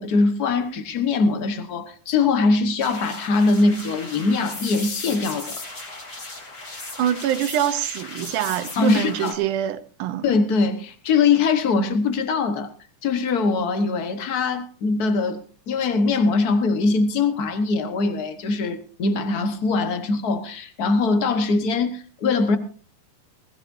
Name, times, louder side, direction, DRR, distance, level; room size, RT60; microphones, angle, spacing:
voice 1, 0.0-5.6 8.8-9.4 10.2-12.7 13.0-15.4 15.7-22.6, left 4 dB, 75° left, 0.8 m, -22 dB
sound 1, 2.8-9.3, left 2 dB, 30° left, 3.7 m, -36 dB
voice 2, 7.0-10.2, right 11 dB, 80° right, 2.3 m, -24 dB
20.5 x 16.0 x 2.7 m
omnidirectional pair, 3.7 m